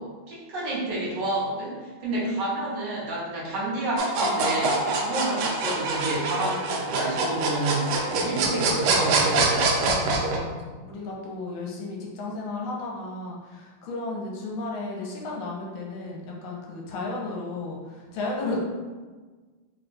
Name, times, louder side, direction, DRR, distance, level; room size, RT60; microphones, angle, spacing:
voice 1, 0.0-9.5, right 1 dB, 65° right, -6 dB, 1.4 m, -30 dB
sound 1, 4.0-10.4, right 3 dB, 85° right, 1.5 m, -24 dB
voice 2, 9.9-18.6, left 3 dB, 75° left, -2 dB, 1.5 m, -34 dB
3.7 x 2.3 x 3.8 m, 1.4 s
omnidirectional pair, 2.3 m